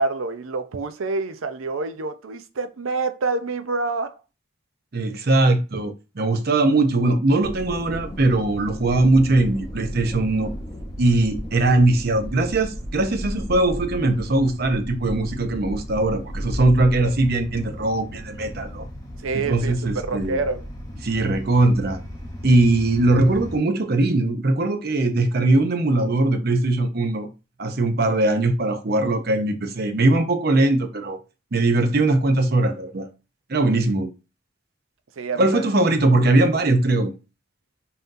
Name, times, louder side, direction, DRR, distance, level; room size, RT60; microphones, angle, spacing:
voice 1, 0.0-4.2 19.2-20.6 35.2-35.7, right 3 dB, 85° right, 0.6 m, -27 dB
voice 2, 4.9-10.5 11.0-18.9 19.3-20.4 21.0-22.0 22.4-27.3 27.6-31.2 31.5-33.1 33.5-34.1 35.4-37.2, right 2 dB, 50° right, 0.7 m, -20 dB
sound 1, 7.4-23.6, equal, 15° left, 0.8 m, -35 dB
5.6 x 2.7 x 2.6 m
head